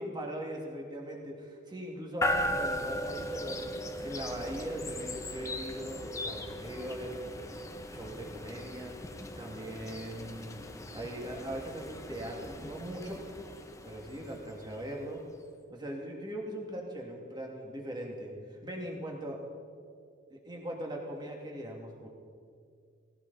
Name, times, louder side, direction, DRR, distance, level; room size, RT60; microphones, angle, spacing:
voice 1, 0.0-3.7 4.0-7.2 7.7-9.0 9.4-10.6 10.9-13.2 13.8-15.2 15.7-19.4 20.3-22.1, right 1 dB, 20° right, -1 dB, 2.5 m, -40 dB
sound 1, 2.2-15.2, left 1 dB, 15° left, 0.8 m, -38 dB
18.5 x 16.5 x 4.2 m, 2.3 s
head